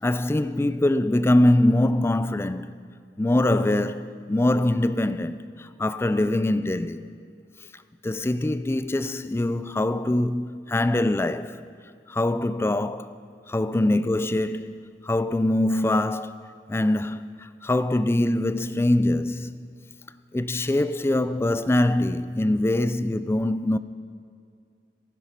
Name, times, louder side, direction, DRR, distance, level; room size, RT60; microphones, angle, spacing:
voice 1, 0.0-2.7 3.2-7.1 8.0-11.6 12.1-13.2 13.5-16.4 16.7-19.6 20.3-23.8, left 1 dB, 15° left, 0.3 m, -23 dB
15.0 x 10.5 x 5.6 m
head